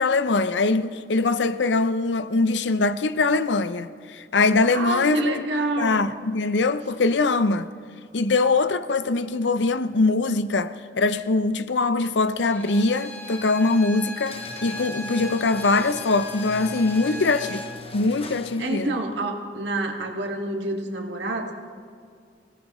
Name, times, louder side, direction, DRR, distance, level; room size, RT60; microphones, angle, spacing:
voice 1, 0.0-5.4 5.8-7.7 8.1-17.6 17.9-19.0, left 3 dB, 85° left, 0.6 m, -22 dB
voice 2, 4.7-6.0 17.0-17.2 18.6-21.5, right 2 dB, 75° right, 2.1 m, -28 dB
Bowed string instrument, 12.4-17.7, left 1 dB, 10° left, 2.3 m, -38 dB
sound 1, 14.2-18.9, left 3 dB, 35° left, 0.9 m, -40 dB
26.0 x 18.0 x 3.1 m
head